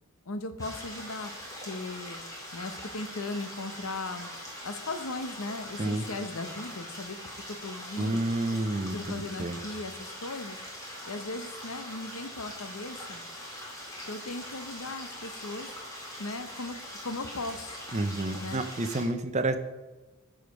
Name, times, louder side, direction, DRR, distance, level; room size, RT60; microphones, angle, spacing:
voice 1, 0.3-1.3 1.7-2.2 2.5-4.3 4.6-7.2 7.5-8.2 8.9-13.2 14.1-15.7 16.2-16.8 17.0-17.8 18.4-18.6, left 2 dB, 75° left, 9 dB, 0.9 m, -37 dB
sound 1, 0.6-19.0, equal, 15° left, 2.2 m, -42 dB
voice 2, 8.0-8.9 9.4-9.6 17.9-19.6, right 2 dB, 30° right, 9 dB, 0.6 m, -29 dB
14.0 x 5.0 x 5.2 m, 1.1 s
head